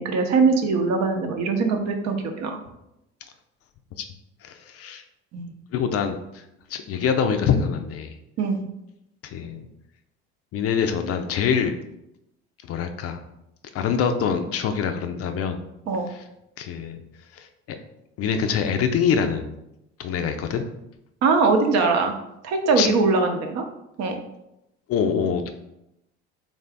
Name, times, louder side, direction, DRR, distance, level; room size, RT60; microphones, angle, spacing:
voice 1, 0.0-2.6 5.3-5.5 8.4-8.6 15.9-16.1 21.2-22.1 22.4-23.6 24.0-24.2, right 4 dB, 55° right, 4 dB, 0.8 m, -21 dB
voice 2, 4.4-5.0 5.7-6.4 6.7-8.1 9.2-9.7 10.5-11.7 12.7-13.2 13.7-15.6 16.1-16.2 16.6-17.0 17.3-17.8 18.2-19.5 20.0-20.6 22.8-22.9 24.9-25.5, left 7 dB, 45° left, 8 dB, 0.5 m, -25 dB
3.7 x 2.6 x 3.4 m, 0.85 s
hypercardioid pair, 65°, 33 cm